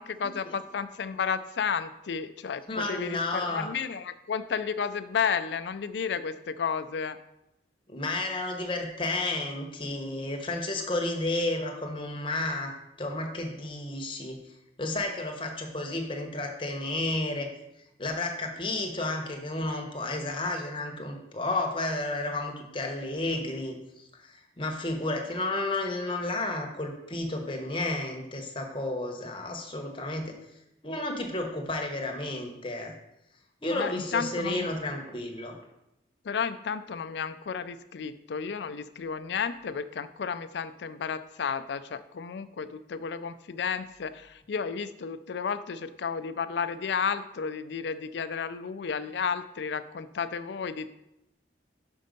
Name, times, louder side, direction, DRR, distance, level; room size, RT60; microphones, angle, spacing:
voice 1, 0.0-7.2 33.7-34.7 36.2-50.9, left 6 dB, 70° left, 13 dB, 0.4 m, -32 dB
voice 2, 2.7-3.7 7.9-12.7 13.0-14.4 14.8-17.5 18.0-30.4 30.8-32.9 33.6-35.5, left 2 dB, 30° left, 2 dB, 0.9 m, -32 dB
Telephone, 34.5-35.6, equal, 20° right, 1.0 m, -48 dB
5.4 x 5.2 x 5.2 m, 0.86 s
head